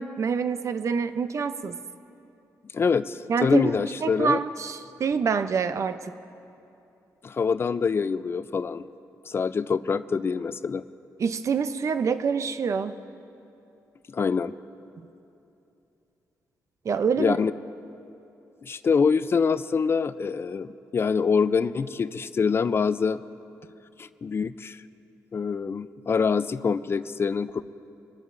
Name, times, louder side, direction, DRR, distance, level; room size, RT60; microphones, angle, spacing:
voice 1, 0.0-1.8 3.3-6.1 11.2-13.0 16.8-17.4, right 6 dB, 50° right, 11 dB, 0.6 m, -26 dB
voice 2, 2.7-4.4 7.2-8.9 9.2-10.8 14.1-14.5 17.2-17.5 18.6-23.2 24.0-24.8 25.3-27.6, left 5 dB, 40° left, 14 dB, 0.4 m, -25 dB
27.0 x 12.0 x 2.6 m, 2.8 s
cardioid pair, 95°, 7 cm